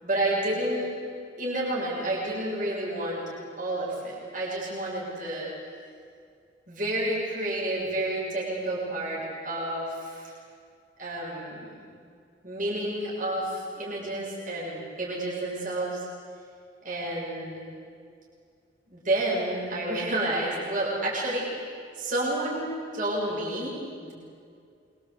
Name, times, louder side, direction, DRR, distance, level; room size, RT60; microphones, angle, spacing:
voice 1, 0.0-0.9 1.4-3.2 3.6-5.5 6.7-10.3 11.0-11.9 12.4-16.0 16.8-17.6 18.9-21.5 22.0-23.7 24.0-24.1, right 1 dB, 45° right, -5 dB, 7.2 m, -30 dB
26.5 x 23.5 x 8.5 m, 2.3 s
head